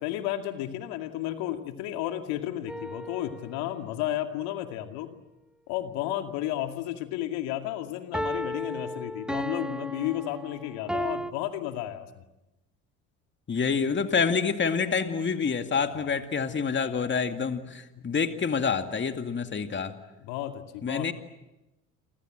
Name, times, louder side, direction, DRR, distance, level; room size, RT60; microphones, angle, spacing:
voice 1, 0.0-5.1 5.7-12.1 15.9-16.2 20.2-21.1, left 13 dB, 70° left, 6 dB, 2.4 m, -33 dB
sound 1, 2.7-3.7 8.1-11.3, equal, ahead, 1.0 m, -34 dB
voice 2, 13.5-19.9 20.8-21.1, left 5 dB, 30° left, 7 dB, 2.2 m, -27 dB
28.5 x 26.0 x 7.7 m, 0.96 s
hypercardioid pair, 70°, 40 cm